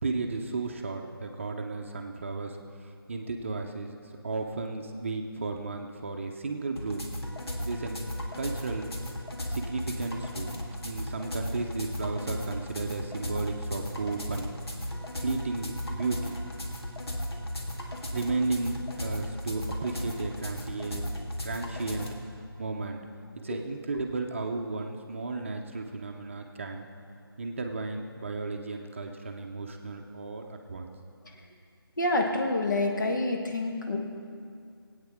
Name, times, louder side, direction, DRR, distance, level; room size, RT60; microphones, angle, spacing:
voice 1, 0.0-2.6 3.1-7.1 7.6-8.0 8.4-8.9 9.5-10.5 10.8-14.5 15.2-16.4 18.0-21.0 21.4-22.1 22.6-23.0 23.4-26.9 27.4-30.9, right 3 dB, 30° right, 3 dB, 0.7 m, -34 dB
sound 1, 6.8-22.1, left 1 dB, 80° left, 1.9 m, -36 dB
voice 2, 32.0-34.0, left 2 dB, 50° left, 1 dB, 1.6 m, -27 dB
21.0 x 8.9 x 3.6 m, 2.3 s
figure-of-eight pair, 165°, 13 cm